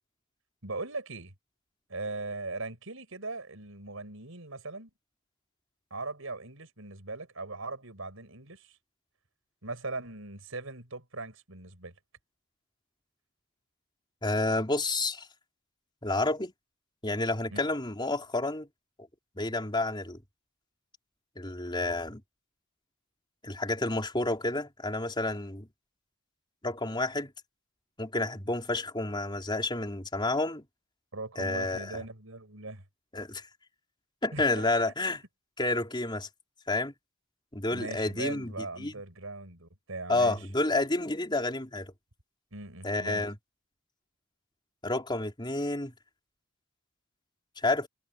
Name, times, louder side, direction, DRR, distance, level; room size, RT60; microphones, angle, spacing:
voice 1, 0.6-1.3 1.9-4.9 5.9-8.8 9.6-11.9 17.5-17.6 31.1-32.8 34.3-35.1 37.7-40.5 42.5-43.2, right 3 dB, 75° right, 5.4 m, -40 dB
voice 2, 14.2-15.3 16.0-16.5 17.0-18.7 19.4-20.2 21.4-22.2 23.4-25.7 26.6-27.3 28.0-30.6 31.4-32.0 33.1-33.4 34.2-35.2 35.6-36.3 36.7-36.9 37.5-38.5 38.8-38.9 40.1-41.9 42.8-43.3 44.8-45.9 47.6-47.9, left 2 dB, 20° left, 4.1 m, -30 dB
head